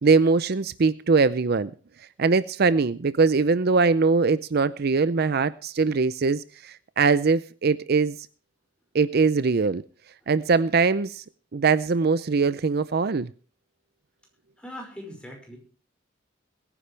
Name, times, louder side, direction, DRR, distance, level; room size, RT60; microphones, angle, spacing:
voice 1, 0.0-1.7 2.2-8.2 8.9-9.8 10.3-11.2 11.5-13.3, right 4 dB, 55° right, 16 dB, 0.5 m, -22 dB
voice 2, 14.6-15.6, left 1 dB, 5° left, 1 dB, 5.3 m, -40 dB
22.0 x 10.0 x 3.3 m, 0.39 s
head